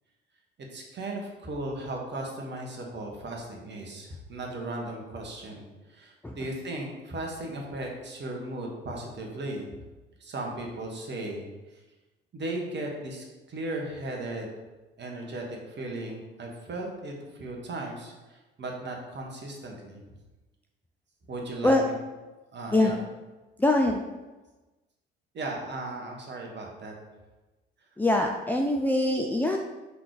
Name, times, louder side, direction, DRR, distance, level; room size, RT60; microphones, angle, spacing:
voice 1, 0.7-9.8 10.2-11.8 12.3-14.5 15.0-20.0 21.3-21.9 22.5-23.0 25.3-26.9, right 2 dB, 35° right, 0 dB, 1.7 m, -36 dB
voice 2, 23.6-24.0 28.0-29.6, left 1 dB, 5° left, 1 dB, 0.5 m, -23 dB
5.8 x 4.0 x 5.0 m, 1.1 s
figure-of-eight pair, 55°, 30 cm